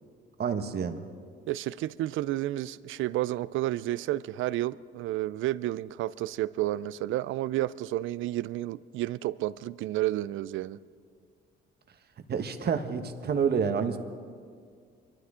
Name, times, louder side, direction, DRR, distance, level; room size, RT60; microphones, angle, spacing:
voice 1, 0.4-1.1 12.3-14.0, right 6 dB, 55° right, 1.2 m, -28 dB
voice 2, 1.5-10.8, right 15 dB, 80° right, 0.4 m, -31 dB
24.5 x 13.0 x 3.7 m
cardioid pair, 90°, 20 cm